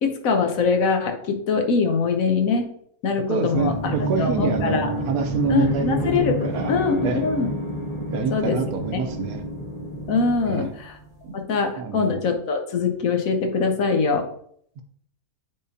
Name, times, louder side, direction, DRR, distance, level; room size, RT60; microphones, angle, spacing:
voice 1, 0.0-2.7 3.0-3.7 4.2-4.9 5.5-7.5 8.3-8.6 8.9-9.0 10.1-10.9 11.3-14.3, left 4 dB, 70° left, 4 dB, 1.2 m, -23 dB
voice 2, 3.3-6.7 7.0-7.2 8.1-9.4 10.5-10.7 11.2-11.4 11.8-12.2 14.8-14.9, right 5 dB, 80° right, 7 dB, 1.2 m, -27 dB
sound 1, 3.5-11.1, right 1 dB, 15° left, 1.7 m, -29 dB
9.1 x 3.8 x 2.7 m, 0.65 s
omnidirectional pair, 1.5 m